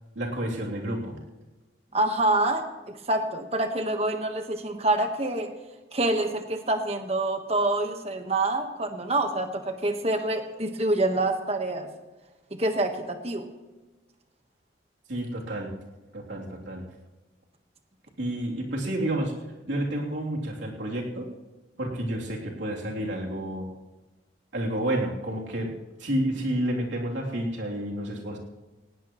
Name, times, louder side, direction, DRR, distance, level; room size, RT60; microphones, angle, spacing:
voice 1, 0.1-1.2 15.1-15.7 16.1-16.8 18.2-19.3 19.6-21.3 21.8-23.7 24.5-25.7 26.0-28.4, right 1 dB, 75° right, -2 dB, 3.1 m, -30 dB
voice 2, 1.9-5.5 5.9-11.9 12.6-13.5, right 2 dB, 35° right, 6 dB, 1.3 m, -26 dB
18.5 x 17.0 x 3.1 m, 1.2 s
head